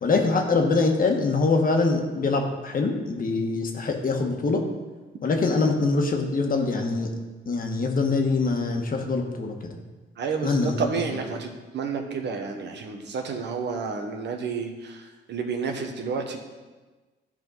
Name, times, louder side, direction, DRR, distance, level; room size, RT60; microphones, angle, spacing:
voice 1, 0.0-4.6 5.2-7.1 7.5-9.8 10.4-10.9, left 3 dB, 45° left, 3 dB, 1.5 m, -24 dB
voice 2, 10.2-11.5 11.7-15.0 15.3-16.4, right 5 dB, 60° right, 3 dB, 1.3 m, -30 dB
13.5 x 5.0 x 4.0 m, 1.3 s
cardioid pair, 90°, 20 cm